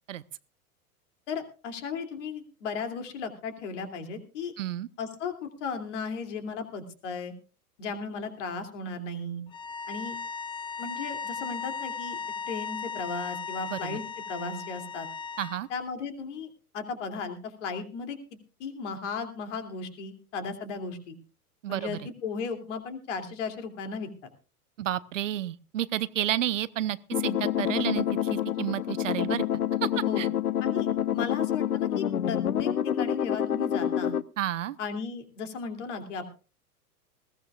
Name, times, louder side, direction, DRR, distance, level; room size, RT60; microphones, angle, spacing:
voice 1, 1.3-4.5 5.0-7.3 7.8-9.4 9.9-10.2 10.8-12.2 12.4-15.1 15.7-16.5 16.7-18.2 18.6-21.2 21.7-24.1 30.0-30.3 30.6-30.9 31.1-34.1 34.8-36.3, left 5 dB, 50° left, 7 dB, 2.8 m, -35 dB
voice 2, 4.6-4.9 13.7-14.0 15.4-15.7 21.6-22.0 24.8-29.4 29.8-29.9 30.2-30.3 34.4-34.8, right 12 dB, 55° right, 19 dB, 0.7 m, -31 dB
sound 1, 9.5-15.6, left 5 dB, 10° left, 0.6 m, -37 dB
sound 2, 27.1-34.2, left 10 dB, 70° left, 0.8 m, -28 dB
20.5 x 16.0 x 2.4 m, 0.34 s
figure-of-eight pair, 100°, 46 cm